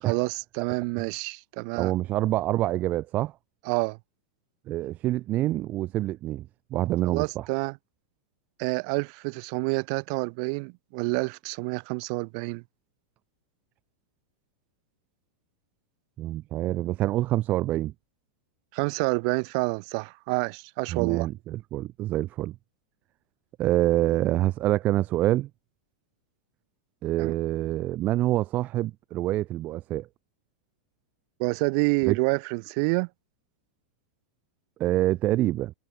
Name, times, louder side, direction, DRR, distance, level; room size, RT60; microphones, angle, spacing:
voice 1, 0.0-1.9 3.7-4.0 7.1-7.8 8.6-12.6 18.7-21.3 27.2-27.3 31.4-33.1, right 36 dB, 50° right, 3.5 m, -28 dB
voice 2, 1.7-3.3 4.7-7.5 16.2-17.9 20.9-22.5 23.6-25.5 27.0-30.1 32.1-32.2 34.8-35.7, right 15 dB, 35° right, 3.0 m, -26 dB
supercardioid pair, 135°, 5 cm